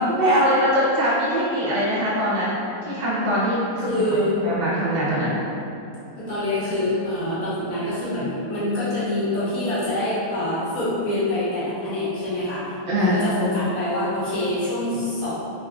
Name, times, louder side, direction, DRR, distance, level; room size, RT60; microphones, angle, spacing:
voice 1, 0.1-2.6 2.9-5.4 12.9-13.2, equal, 55° right, -9 dB, 0.5 m, -22 dB
voice 2, 3.8-4.4 6.2-12.6 13.0-15.3, left 1 dB, 60° left, -11 dB, 1.3 m, -25 dB
3.6 x 2.2 x 2.4 m, 2.7 s
omnidirectional pair, 1.7 m